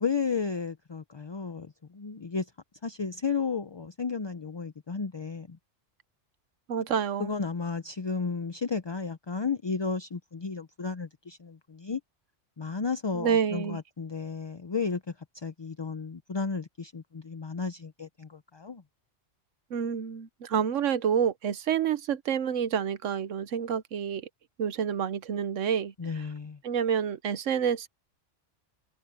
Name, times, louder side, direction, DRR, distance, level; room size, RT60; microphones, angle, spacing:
voice 1, 0.0-2.5 2.8-5.6 7.2-12.0 12.6-15.0 15.3-18.8 26.0-26.6, left 5 dB, 30° left, 0.5 m, -33 dB
voice 2, 6.7-7.3 13.1-13.8 19.7-24.3 24.6-25.9 26.6-27.9, right 8 dB, 85° right, 1.2 m, -28 dB
omnidirectional pair, 1.3 m